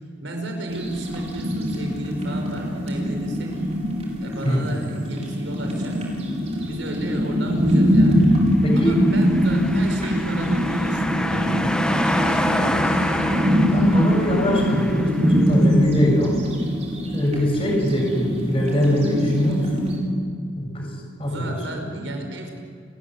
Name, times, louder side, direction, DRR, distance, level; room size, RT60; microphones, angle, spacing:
voice 1, 0.2-3.6 4.2-6.0 6.6-8.3 8.8-12.0 12.2-12.9 21.3-22.5, right 1 dB, 85° right, 3 dB, 5.3 m, -33 dB
sound 1, 0.7-20.0, equal, 35° right, 4.9 m, -23 dB
voice 2, 4.4-4.8 8.6-8.9 13.6-16.4 17.1-20.0 20.6-21.9, equal, 30° left, -1 dB, 7.7 m, -23 dB
sound 2, 8.8-15.6, left 1 dB, 5° left, 1.5 m, -27 dB
30.0 x 14.5 x 9.6 m, 2.2 s
head